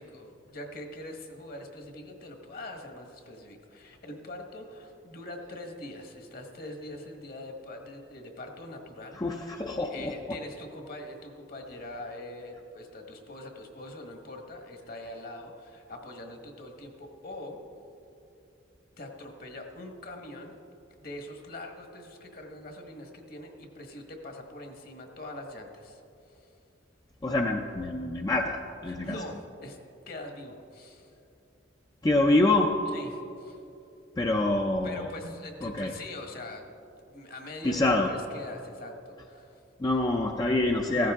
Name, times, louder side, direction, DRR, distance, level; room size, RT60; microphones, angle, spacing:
voice 1, 0.0-9.5 9.8-17.6 19.0-20.5 21.0-26.0 26.3-26.5 28.9-29.8 30.1-31.1 32.9-33.6 34.8-36.8 37.0-39.6, left 1 dB, 50° left, 3 dB, 1.4 m, -43 dB
voice 2, 9.2-10.4 27.2-29.2 32.0-32.7 34.2-35.1 35.6-35.9 37.6-38.1 39.8-41.1, left 2 dB, 20° left, 2 dB, 0.5 m, -26 dB
15.5 x 14.0 x 3.6 m, 2.8 s
head